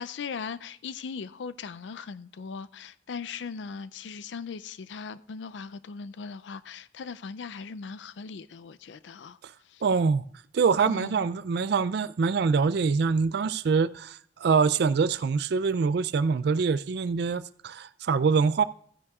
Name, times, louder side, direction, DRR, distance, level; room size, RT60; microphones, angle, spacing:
voice 1, 0.0-9.4 9.7-9.8 10.9-11.2, left 5 dB, 85° left, 0.4 m, -39 dB
voice 2, 9.8-10.3 10.5-18.6, right 5 dB, 65° right, 0.4 m, -24 dB
15.0 x 9.6 x 2.4 m
head